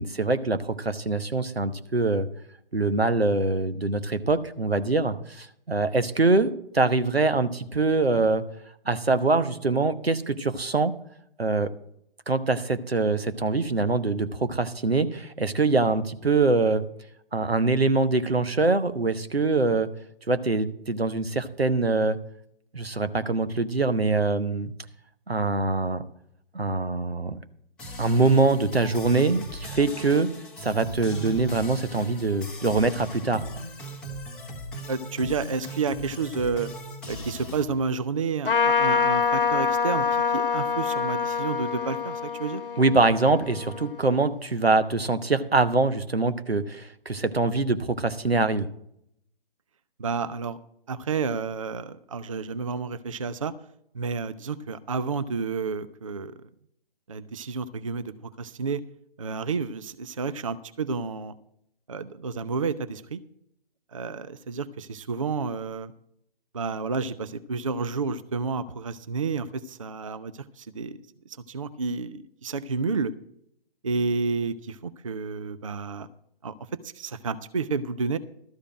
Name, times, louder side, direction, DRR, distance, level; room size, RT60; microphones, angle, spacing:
voice 1, 0.0-2.3 2.7-8.4 8.9-11.0 11.4-11.7 12.3-16.8 17.3-19.9 20.3-22.2 22.7-24.7 25.3-26.0 26.5-27.4 28.0-30.3 30.6-33.6 42.8-48.7, right 3 dB, 85° right, 10 dB, 1.0 m, -24 dB
sound 1, 27.8-37.6, right 1 dB, 5° left, 0.9 m, -38 dB
voice 2, 34.9-36.7 37.1-42.6 50.0-50.6 50.9-53.5 53.9-56.3 57.1-58.8 59.2-61.3 61.9-63.2 63.9-65.9 66.5-71.0 71.3-73.1 73.8-76.1 76.4-76.5 76.8-78.2, right 4 dB, 35° right, 15 dB, 0.4 m, -30 dB
Trumpet, 38.4-44.3, left 5 dB, 60° left, 1.0 m, -26 dB
12.5 x 4.9 x 8.6 m, 0.72 s
figure-of-eight pair, 140°, 30 cm